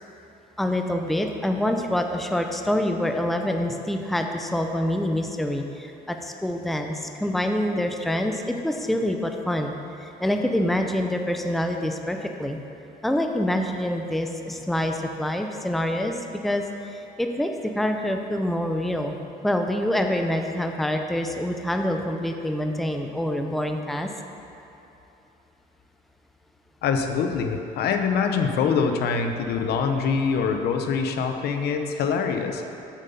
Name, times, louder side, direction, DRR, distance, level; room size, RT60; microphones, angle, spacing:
voice 1, 0.6-12.6 13.0-16.6 16.9-19.2 19.4-24.1, left 1 dB, ahead, 4 dB, 0.5 m, -26 dB
voice 2, 26.8-32.7, left 5 dB, 70° left, 6 dB, 0.8 m, -24 dB
7.4 x 5.4 x 6.9 m, 2.9 s
cardioid pair, 110°, 17 cm